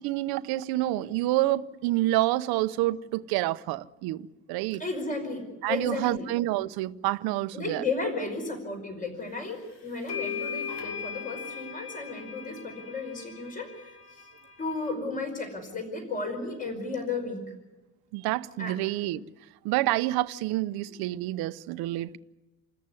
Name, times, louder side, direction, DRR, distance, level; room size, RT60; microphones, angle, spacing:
voice 1, 0.0-4.8 5.6-7.8 18.1-19.2 19.6-22.2, right 16 dB, 65° right, 0.9 m, -28 dB
voice 2, 4.8-6.3 7.5-14.3 14.6-17.4 18.6-18.7, left 3 dB, 20° left, 5.2 m, -34 dB
sound 1, 9.5-9.6 10.1-14.9, left 7 dB, 75° left, 7.0 m, -38 dB
29.0 x 14.0 x 9.8 m
cardioid pair, 170°, 40 cm